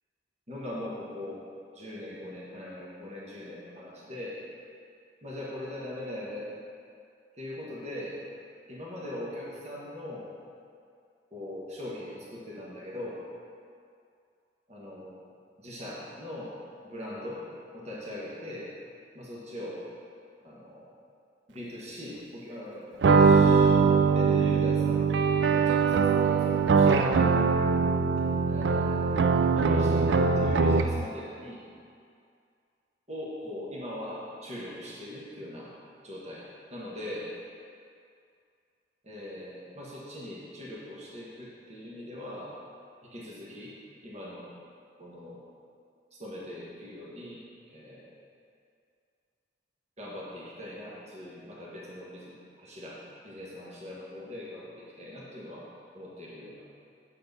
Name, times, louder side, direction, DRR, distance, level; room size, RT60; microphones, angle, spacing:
voice 1, 0.5-1.4 1.7-4.4 5.2-6.5 7.4-8.2 8.7-10.3 11.3-13.2 14.7-15.2 15.6-16.5 16.8-17.4 17.7-18.7 19.1-19.8 20.4-20.9 21.5-23.8 24.1-25.1 25.5-27.2 28.4-31.6 33.1-35.7 36.0-36.4 36.7-37.3 39.0-42.5 43.1-43.7 44.0-44.5 45.0-45.4 46.1-47.4 47.7-48.2 50.0-53.0 53.2-55.7 55.9-56.6, left 1 dB, 40° right, -6 dB, 1.3 m, -41 dB
sound 1, 23.0-31.1, right 5 dB, 85° right, 0.4 m, -22 dB
7.5 x 4.4 x 5.4 m, 2.4 s
head